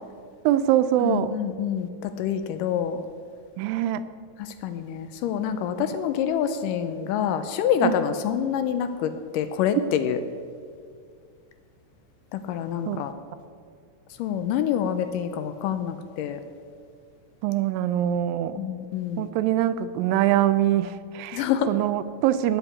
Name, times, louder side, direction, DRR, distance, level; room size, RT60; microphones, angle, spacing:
voice 1, 0.5-1.3 3.6-4.0 7.8-7.9 12.9-13.0 17.4-18.6 19.2-22.6, right 12 dB, 85° right, 12 dB, 2.3 m, -23 dB
voice 2, 1.0-3.0 4.4-10.2 12.3-13.1 14.2-16.4 18.6-19.3 21.3-21.7, left 9 dB, 80° left, 10 dB, 2.1 m, -27 dB
9.0 x 8.0 x 8.4 m, 2.2 s
omnidirectional pair, 4.1 m